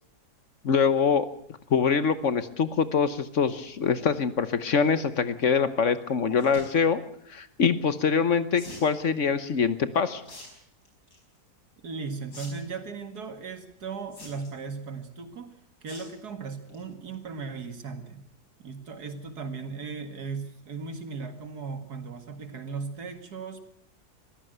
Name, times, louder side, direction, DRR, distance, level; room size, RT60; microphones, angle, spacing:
voice 1, 0.6-1.3 1.7-7.0 7.3-10.2, left 6 dB, 55° left, 13 dB, 1.3 m, -24 dB
sound 1, 6.3-6.7 8.6-8.9 10.2-10.5 10.9-11.2 12.3-12.5 12.8-12.9 14.1-14.6 15.9-16.1 16.5-16.8 17.1-17.2 17.4-17.5, left 2 dB, 85° left, 5.7 m, -44 dB
voice 2, 11.8-15.5 15.8-18.2 18.6-23.6, right 4 dB, 75° right, 9 dB, 2.5 m, -37 dB
22.0 x 15.0 x 7.9 m, 0.63 s
omnidirectional pair, 1.7 m